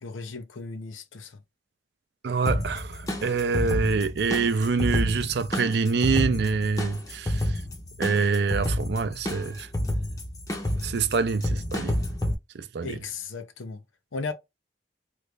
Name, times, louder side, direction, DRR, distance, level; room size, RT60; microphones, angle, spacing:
voice 1, 0.0-1.4 12.8-13.8 14.1-14.3, left 4 dB, 85° left, 0.6 m, -36 dB
voice 2, 2.2-7.6 8.0-9.7 10.8-12.0 12.5-13.0, right 4 dB, 55° right, 0.4 m, -26 dB
sound 1, 2.4-12.3, left 1 dB, 20° left, 0.6 m, -29 dB
3.2 x 2.4 x 3.2 m
head